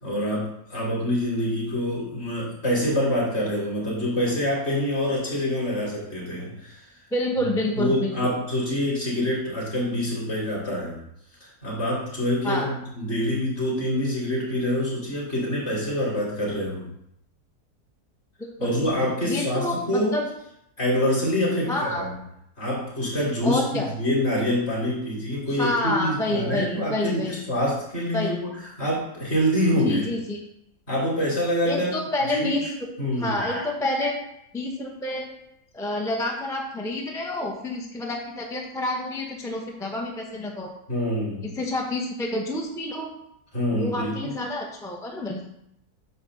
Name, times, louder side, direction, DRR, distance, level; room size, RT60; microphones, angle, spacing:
voice 1, 0.0-6.8 7.8-11.0 11.4-16.8 18.6-20.1 20.8-22.1 22.6-28.5 28.8-30.1 30.9-31.9 32.3-32.7 33.0-33.6 34.0-34.1 40.9-41.5 43.5-44.3, left 1 dB, 40° left, -5 dB, 3.2 m, -26 dB
voice 2, 7.1-8.3 12.4-12.7 18.6-18.7 19.0-20.3 21.7-22.1 23.4-23.9 25.6-27.4 28.1-28.4 29.8-30.4 31.6-32.7 33.2-34.2 34.5-35.3 35.7-40.7 41.5-43.1 43.7-45.5, left 1 dB, 5° left, 0 dB, 0.4 m, -28 dB
9.1 x 3.2 x 6.3 m, 0.76 s
omnidirectional pair, 1.7 m